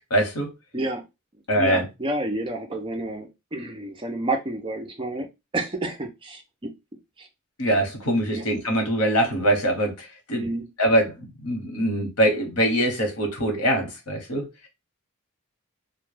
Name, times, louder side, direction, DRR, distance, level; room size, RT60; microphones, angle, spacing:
voice 1, 0.1-0.5 1.5-1.8 7.6-10.5 10.8-14.5, right 1 dB, 85° left, 0.9 m, -23 dB
voice 2, 0.7-1.0 1.6-5.3 5.5-6.7 7.2-7.3 8.3-8.5 10.4-10.7, right 2 dB, 25° right, 0.4 m, -30 dB
2.2 x 2.1 x 3.1 m
head